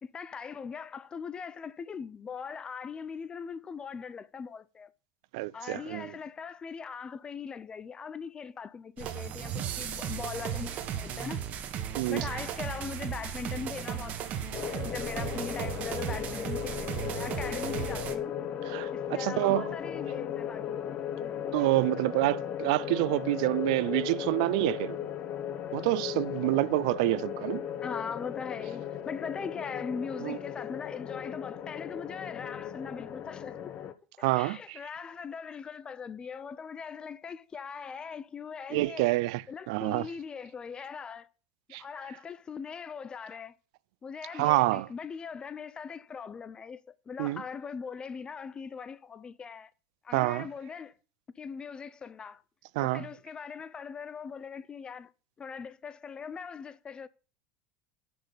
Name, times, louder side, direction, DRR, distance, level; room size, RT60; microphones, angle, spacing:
voice 1, 0.0-4.9 5.5-11.4 12.1-18.4 18.9-21.6 27.8-33.7 34.2-39.1 39.5-41.3 41.7-43.6 44.0-49.7 50.0-50.9 51.4-52.4 52.8-55.1 55.4-57.1, left 6 dB, 25° left, 0.5 m, -40 dB
voice 2, 5.3-6.1 12.0-12.4 18.7-19.7 21.5-25.0 25.7-27.6 30.2-30.4 34.2-34.8 38.7-40.1 41.7-41.8 44.3-44.9 47.2-47.4 50.1-50.5 52.8-53.1, right 20 dB, 70° right, 0.3 m, -28 dB
sound 1, 9.0-18.2, right 9 dB, 50° right, 1.1 m, -36 dB
sound 2, 14.5-33.9, left 9 dB, 45° left, 0.8 m, -36 dB
6.1 x 5.0 x 6.6 m
supercardioid pair, 100°, 4 cm